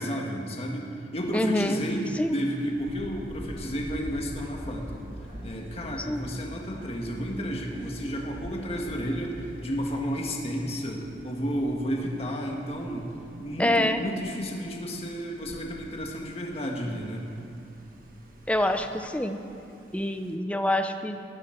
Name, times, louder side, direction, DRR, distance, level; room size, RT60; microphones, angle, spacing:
voice 1, 0.0-5.0 5.4-9.3 9.6-13.1 13.4-17.2, equal, 35° left, 0 dB, 1.6 m, -32 dB
Thunder, 1.1-20.3, equal, 50° right, 1.5 m, -47 dB
voice 2, 1.3-1.8 2.2-2.4 6.1-6.2 13.6-14.0 18.5-19.4 19.9-21.2, left 1 dB, 5° left, 7 dB, 0.6 m, -26 dB
sound 1, 3.5-9.6, equal, 70° left, 3.0 m, -46 dB
18.0 x 13.0 x 4.5 m, 2.6 s
head